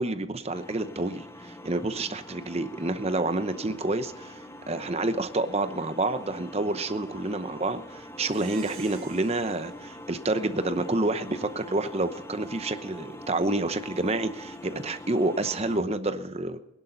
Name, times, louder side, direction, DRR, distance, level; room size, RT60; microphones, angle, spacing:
voice 1, 0.0-16.6, right 2 dB, 30° right, 10 dB, 0.8 m, -29 dB
sound 1, 0.5-15.8, left 1 dB, 15° left, 0.7 m, -44 dB
Plucked string instrument, 8.2-11.0, right 6 dB, 70° right, 3.7 m, -49 dB
21.0 x 11.5 x 4.0 m, 0.92 s
head